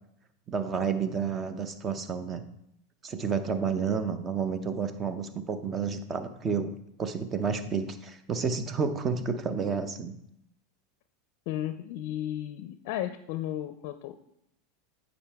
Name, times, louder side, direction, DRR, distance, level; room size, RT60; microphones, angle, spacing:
voice 1, 0.5-2.4 3.0-6.7 7.0-10.2, right 6 dB, 25° right, 10 dB, 0.7 m, -30 dB
voice 2, 11.5-14.1, left 12 dB, 60° left, 11 dB, 0.4 m, -34 dB
8.6 x 5.2 x 3.5 m, 0.78 s
supercardioid pair, 120°, 0 cm